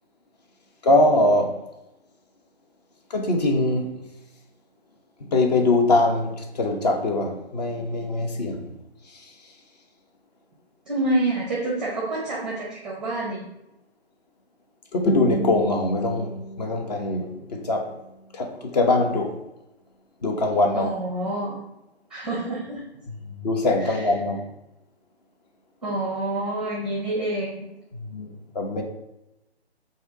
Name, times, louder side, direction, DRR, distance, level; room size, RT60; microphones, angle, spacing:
voice 1, 0.8-1.6 3.1-3.9 5.3-8.7 14.9-16.3 16.6-17.9 18.3-19.4 20.2-20.9 23.1-23.2 23.4-24.4 28.0-28.3 28.5-28.8, left 2 dB, 40° left, 3 dB, 1.0 m, -22 dB
voice 2, 10.9-13.4 20.7-21.6 22.1-22.8 23.8-24.0 25.8-27.7, right 2 dB, ahead, -5 dB, 0.7 m, -27 dB
Guitar, 15.1-18.1, right 1 dB, 90° left, 0.7 m, -32 dB
7.8 x 2.8 x 4.7 m, 0.91 s
figure-of-eight pair, 145°, 32 cm